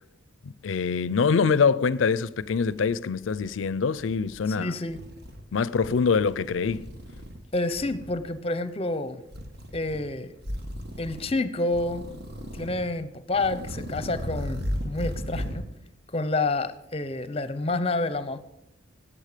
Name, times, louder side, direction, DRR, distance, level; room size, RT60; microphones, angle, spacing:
voice 1, 0.4-4.7 5.5-6.9, left 5 dB, 85° left, 0.5 m, -24 dB
sound 1, 2.4-3.6 4.0-4.4 4.9-5.4 5.8-7.4 7.7-8.2 9.3-10.0 10.4-11.3 11.7-12.9 13.3-15.6, equal, 55° right, 1.6 m, -36 dB
voice 2, 4.5-5.0 7.5-9.2 9.7-10.3 11.0-12.1 12.5-15.6 16.1-18.4, left 2 dB, 30° left, 0.7 m, -29 dB
14.0 x 8.7 x 5.0 m
head